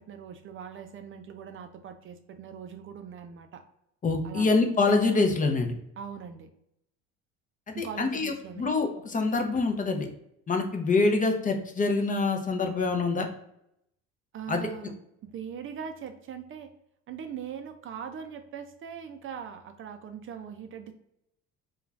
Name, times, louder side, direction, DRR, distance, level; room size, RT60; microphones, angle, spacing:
voice 1, 0.0-3.6 4.2-4.5 6.0-6.5 7.7-8.7 14.3-14.9 15.2-16.7 17.1-20.9, right 7 dB, 40° right, 7 dB, 0.4 m, -41 dB
voice 2, 4.0-5.7 7.8-10.1 10.5-13.3 14.5-14.6, left 3 dB, 25° left, 4 dB, 0.5 m, -25 dB
2.5 x 2.3 x 3.1 m, 0.77 s
supercardioid pair, 80°, 31 cm